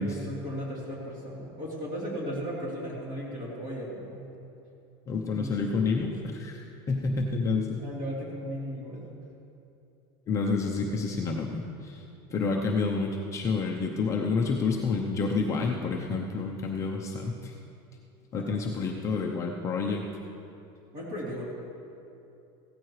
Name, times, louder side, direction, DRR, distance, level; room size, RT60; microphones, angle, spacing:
voice 1, 0.0-4.3 5.3-6.1 7.8-9.1 18.3-18.6 20.9-21.4, equal, 30° right, -5 dB, 3.4 m, -36 dB
voice 2, 5.1-7.8 10.3-12.0 12.3-17.5 18.3-20.0, left 4 dB, 20° left, 0 dB, 0.7 m, -29 dB
16.5 x 13.5 x 3.2 m, 2.7 s
cardioid pair, 170°, 13 cm